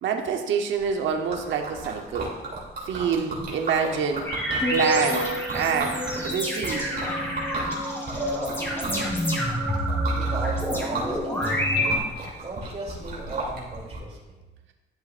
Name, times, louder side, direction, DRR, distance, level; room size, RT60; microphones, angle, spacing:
voice 1, 0.0-2.3 2.8-4.3 4.7-6.9, right 6 dB, 75° right, 4 dB, 0.9 m, -26 dB
Liquid, 0.8-14.0, right 2 dB, 55° right, 2.8 m, -35 dB
sound 1, 4.3-12.0, equal, 10° left, 2.9 m, -27 dB
voice 2, 8.1-9.5 10.1-11.8 12.4-14.3, right 3 dB, 35° right, -3 dB, 2.8 m, -36 dB
11.5 x 7.5 x 2.5 m, 1.1 s
cardioid pair, 90°, 20 cm